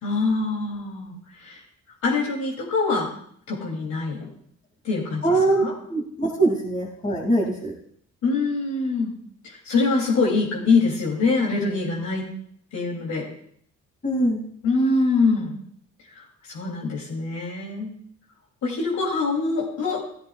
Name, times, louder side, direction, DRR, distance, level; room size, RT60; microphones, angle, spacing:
voice 1, 0.0-1.1 1.4-1.6 2.0-3.1 3.5-4.3 4.8-5.2 5.6-5.7 8.2-9.1 9.4-12.2 12.7-13.3 14.6-15.6 16.5-17.9 18.6-20.0, left 3 dB, 70° left, -3 dB, 3.0 m, -24 dB
voice 2, 5.2-5.6 5.9-7.7 14.0-14.4, right 2 dB, 25° left, -2 dB, 2.6 m, -22 dB
14.5 x 13.5 x 2.4 m, 0.65 s
cardioid pair, 90°, 30 cm